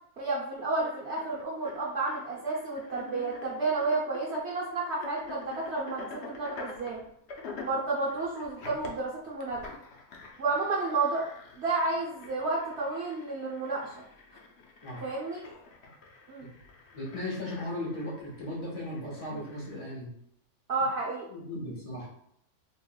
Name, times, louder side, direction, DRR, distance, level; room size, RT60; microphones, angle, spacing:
voice 1, 0.2-7.0 7.6-9.7 10.4-11.2 11.6-14.0 15.0-15.4 16.3-16.5 20.7-21.3, right 3 dB, 50° right, -6 dB, 1.0 m, -31 dB
sound 1, 0.8-19.8, left 4 dB, 55° left, 0.8 m, -47 dB
voice 2, 16.9-20.1 21.3-22.1, left 1 dB, 25° left, -5 dB, 1.4 m, -37 dB
4.3 x 3.4 x 2.3 m, 0.72 s
omnidirectional pair, 1.6 m